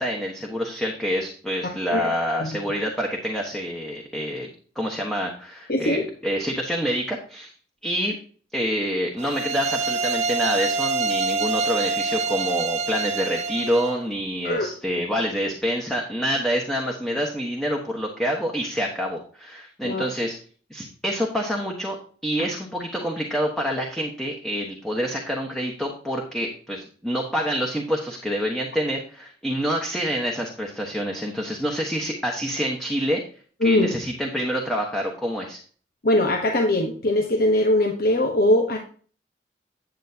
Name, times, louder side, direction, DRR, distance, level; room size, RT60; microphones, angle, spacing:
voice 1, 0.0-4.5 4.7-7.5 7.8-8.2 8.5-20.4 20.7-22.0 22.2-33.2 33.6-35.6, equal, ahead, -1 dB, 1.3 m, -27 dB
voice 2, 5.7-6.0 14.4-14.7 19.8-20.0 33.6-33.9 36.0-38.8, left 1 dB, 55° left, 2 dB, 1.2 m, -21 dB
sound 1, 9.2-14.0, right 4 dB, 40° right, 0.7 m, -26 dB
10.0 x 8.0 x 2.9 m, 0.42 s
head